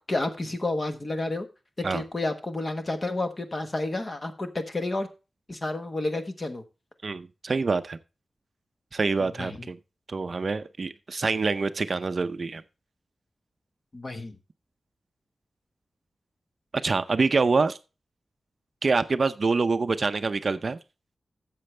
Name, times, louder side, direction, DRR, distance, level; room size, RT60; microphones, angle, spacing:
voice 1, 0.0-1.5 1.8-5.1 5.5-6.6 9.4-9.7 13.9-14.4, left 2 dB, 30° left, 1.3 m, -30 dB
voice 2, 7.0-8.0 8.9-9.8 10.1-12.6 16.8-17.8 18.8-20.8, right 4 dB, 45° right, 0.6 m, -26 dB
13.0 x 7.6 x 3.3 m
wide cardioid pair, 150°, 0 cm